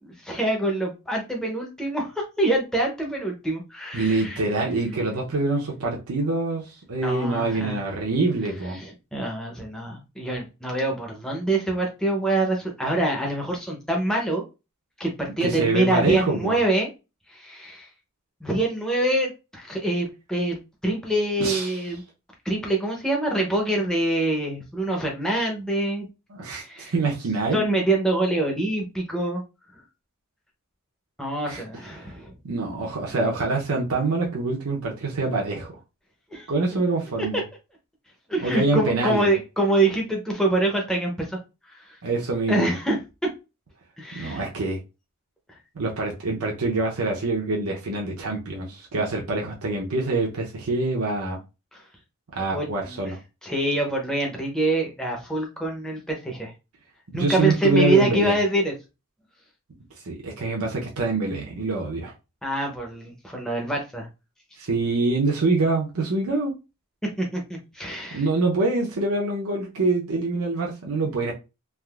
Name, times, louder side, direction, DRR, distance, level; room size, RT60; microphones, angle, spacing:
voice 1, 0.0-4.4 7.0-7.8 8.7-14.4 15.0-16.9 17.3-17.9 18.4-22.0 22.4-26.1 26.5-26.9 27.5-29.4 31.2-32.3 36.3-36.5 38.3-41.4 41.7-42.0 42.5-43.3 44.0-44.4 51.7-51.8 52.5-53.0 53.4-56.5 57.1-58.7 62.4-64.1 67.0-68.3, right 2 dB, 5° left, 0.6 m, -25 dB
voice 2, 3.9-8.8 15.4-16.6 21.4-21.8 26.3-27.6 31.5-31.6 32.4-35.7 36.5-37.4 38.4-39.3 42.0-42.8 44.1-44.8 45.8-51.4 52.3-53.2 57.1-58.3 60.0-62.1 64.6-66.5 68.1-71.3, right 3 dB, 80° right, 0.7 m, -25 dB
3.5 x 2.5 x 2.3 m
head